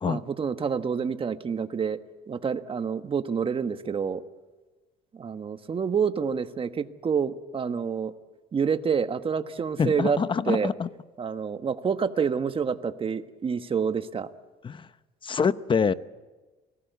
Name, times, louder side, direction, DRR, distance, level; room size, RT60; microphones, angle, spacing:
voice 1, 0.1-2.0 2.3-4.2 5.1-8.1 8.5-10.2 10.5-10.7 11.2-14.3, right 6 dB, 30° right, 9 dB, 1.3 m, -28 dB
voice 2, 9.8-10.9 14.6-14.9 15.2-15.9, left 6 dB, 30° left, 14 dB, 0.8 m, -25 dB
28.0 x 19.5 x 8.2 m, 1.2 s
cardioid pair, 110°, 17 cm